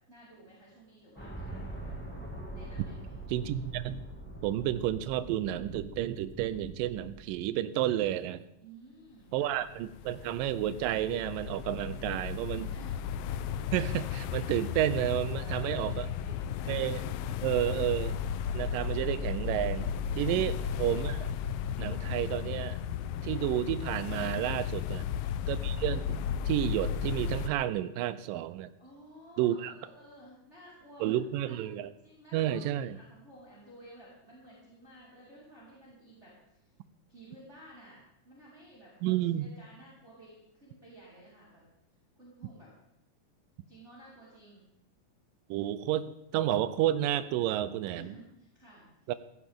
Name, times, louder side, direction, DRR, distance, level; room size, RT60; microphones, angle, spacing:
voice 1, 0.1-1.9 2.5-3.2 8.6-9.5 12.7-13.0 15.4-16.8 20.2-20.4 24.8-25.2 28.8-31.2 31.5-31.6 32.0-36.7 37.1-41.6 42.2-42.7 43.7-44.6 47.8-49.1, right 1 dB, 20° right, -7 dB, 4.5 m, -54 dB
sound 1, 1.2-7.4, right 1 dB, 5° left, 1.0 m, -43 dB
voice 2, 3.3-4.0 4.4-8.4 9.3-12.7 13.7-16.1 16.7-17.0 17.4-18.2 18.5-19.9 20.2-21.3 21.8-22.8 23.2-25.0 25.5-26.2 26.5-28.7 29.4-29.7 31.0-31.9 32.3-33.0 39.0-39.5 45.5-48.1 49.1-49.2, right 12 dB, 80° right, 14 dB, 2.3 m, -31 dB
sound 2, 9.5-27.5, left 8 dB, 90° left, 2.4 m, -34 dB
16.5 x 15.5 x 3.7 m, 0.82 s
omnidirectional pair, 4.0 m